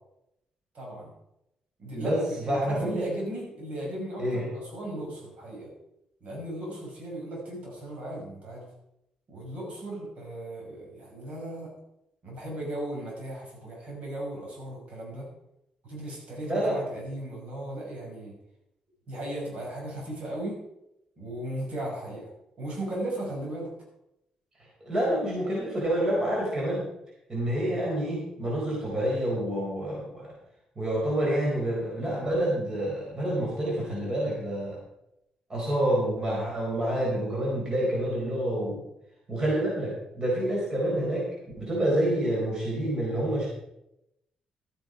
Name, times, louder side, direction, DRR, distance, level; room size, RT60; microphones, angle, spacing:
voice 1, 0.7-1.1 1.8-5.7 6.2-8.7 9.3-11.7 12.2-15.3 15.8-18.3 19.1-20.6 21.2-22.3 22.6-23.7, right 1 dB, 60° right, -2 dB, 6.0 m, -36 dB
voice 2, 1.9-3.0 4.2-4.5 16.4-16.8 24.8-26.9 27.3-30.3 30.8-34.8 35.5-38.8 39.3-43.5, right 1 dB, 30° right, -4 dB, 4.3 m, -28 dB
13.0 x 9.2 x 4.9 m, 0.84 s
cardioid pair, 110°, 2 cm